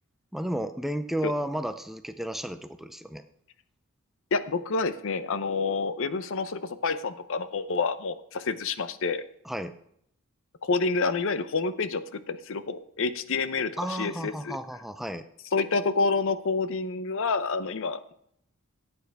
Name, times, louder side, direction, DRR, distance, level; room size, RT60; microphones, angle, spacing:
voice 1, 0.3-3.2 9.4-9.7 13.8-15.3, equal, ahead, 9 dB, 0.4 m, -32 dB
voice 2, 4.3-9.2 10.6-12.0 12.3-13.7 14.0-14.6 15.5-18.1, left 4 dB, 60° left, 12 dB, 0.7 m, -28 dB
15.0 x 8.7 x 3.5 m, 0.71 s
head